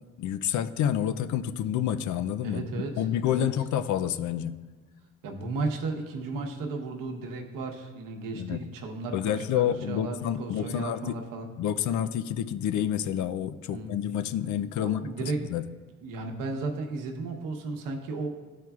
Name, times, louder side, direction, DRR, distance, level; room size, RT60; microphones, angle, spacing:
voice 1, 0.2-2.7 3.0-4.5 8.3-8.6 9.1-11.2 11.6-15.0 15.4-15.6, left 10 dB, 65° left, 12 dB, 0.4 m, -28 dB
voice 2, 2.4-3.5 5.2-11.5 13.7-14.0 14.8-15.4 16.0-18.3, right 3 dB, 85° right, 3 dB, 1.0 m, -34 dB
12.0 x 4.6 x 2.3 m, 1.3 s
cardioid pair, 105°, 32 cm